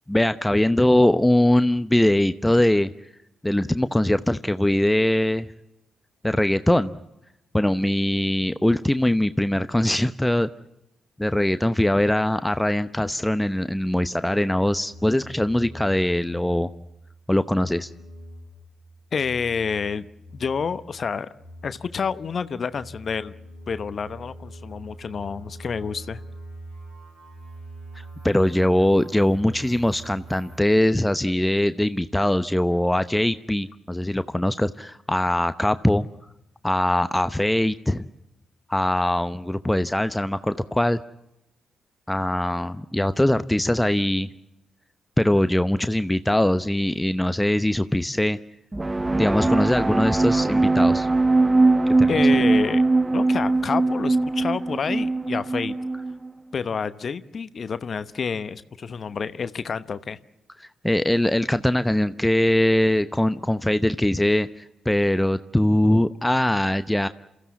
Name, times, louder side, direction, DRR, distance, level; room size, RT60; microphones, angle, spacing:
voice 1, 0.1-2.9 3.4-5.5 6.2-6.9 7.5-10.5 11.2-16.7 17.3-17.9 27.9-36.1 36.6-38.0 38.7-41.0 42.1-44.3 45.2-48.4 49.1-51.1 52.0-52.2 60.6-67.1, left 1 dB, 10° left, 12 dB, 0.9 m, -22 dB
sound 1, 14.9-17.1 17.4-21.0 21.3-30.6, right 1 dB, 75° right, 6.2 m, -43 dB
voice 2, 19.1-20.0 20.3-21.3 21.6-23.3 23.7-26.2 52.1-52.8 53.1-55.7 56.5-60.2, left 6 dB, 50° left, 14 dB, 1.0 m, -28 dB
sound 2, 48.7-56.3, right 3 dB, 20° right, 0.8 m, -21 dB
28.5 x 15.0 x 8.4 m, 0.87 s
hypercardioid pair, 40°, 0 cm